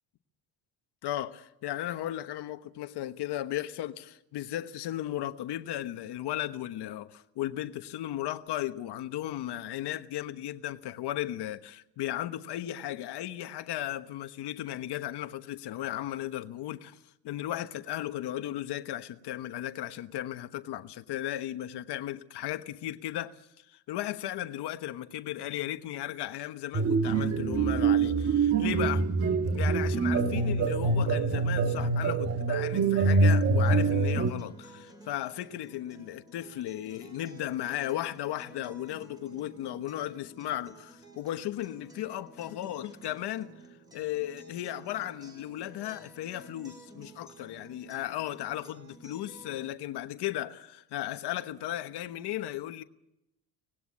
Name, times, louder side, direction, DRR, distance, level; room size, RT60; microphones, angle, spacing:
voice 1, 1.0-17.0 17.2-29.1 29.5-43.5 43.9-52.8, left 13 dB, 60° left, 1.2 m, -36 dB
sound 1, 26.7-34.3, right 4 dB, 30° right, 1.2 m, -25 dB
Acoustic guitar, 33.6-49.7, right 2 dB, 10° right, 5.0 m, -53 dB
25.0 x 19.0 x 8.5 m
cardioid pair, 170°, 46 cm